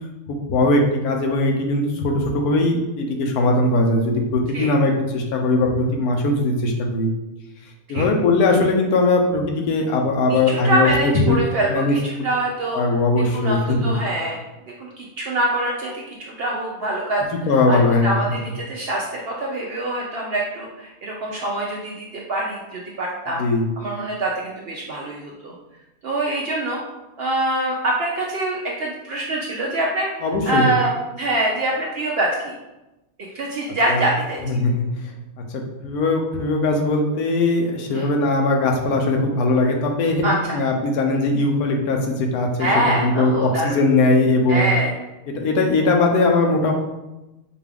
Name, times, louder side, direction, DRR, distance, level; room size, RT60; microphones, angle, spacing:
voice 1, 0.3-7.1 7.9-11.4 11.7-11.9 12.7-14.0 17.5-18.2 23.4-23.7 30.2-30.7 33.9-34.1 34.5-35.1 35.5-44.7 45.3-46.7, left 2 dB, 90° left, 2 dB, 1.2 m, -20 dB
voice 2, 10.3-12.8 13.3-14.4 14.8-17.2 17.7-23.4 23.8-25.5 26.0-26.8 27.2-30.1 30.4-32.5 33.3-34.4 37.9-38.1 40.2-40.6 42.6-43.8 44.5-44.9, right 1 dB, 65° right, -2 dB, 0.6 m, -24 dB
4.8 x 2.3 x 3.3 m, 1.0 s
omnidirectional pair, 1.5 m